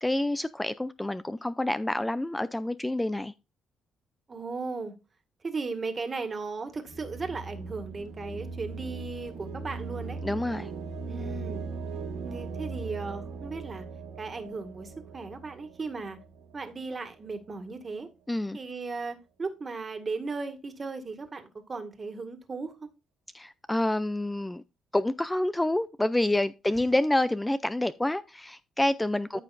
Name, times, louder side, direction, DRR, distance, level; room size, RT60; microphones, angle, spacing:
voice 1, 0.0-3.3 10.2-10.7 18.3-18.6 23.3-24.6 24.9-29.4, left 1 dB, 10° left, 0.4 m, -28 dB
voice 2, 4.3-4.9 5.4-10.2 11.1-11.6 12.2-13.9 14.2-16.2 16.5-18.1 18.5-22.9 26.7-26.9 29.3-29.4, right 4 dB, 35° right, 1.9 m, -36 dB
sound 1, 6.9-16.7, right 4 dB, 85° right, 1.7 m, -39 dB
14.0 x 5.6 x 2.6 m
cardioid pair, 90°, 0 cm